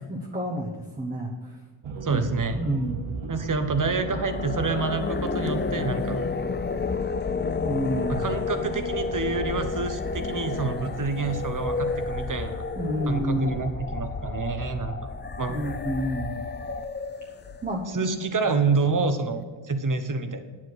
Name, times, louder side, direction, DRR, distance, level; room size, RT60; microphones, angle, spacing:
voice 1, 0.1-1.6 2.1-2.3 2.5-3.0 7.6-8.3 12.8-13.6 15.5-16.4 17.6-18.1, right 1 dB, 15° right, -2 dB, 1.1 m, -29 dB
sound 1, 1.8-6.3, right 4 dB, 70° right, 1.0 m, -36 dB
voice 2, 2.0-2.6 3.3-6.2 8.1-12.6 13.1-15.1 15.4-15.6 17.9-20.4, right 4 dB, 40° right, 9 dB, 1.0 m, -28 dB
sound 2, 3.9-18.0, left 4 dB, 25° left, 0.4 m, -31 dB
10.0 x 7.5 x 6.2 m, 1.4 s
wide cardioid pair, 170°, 49 cm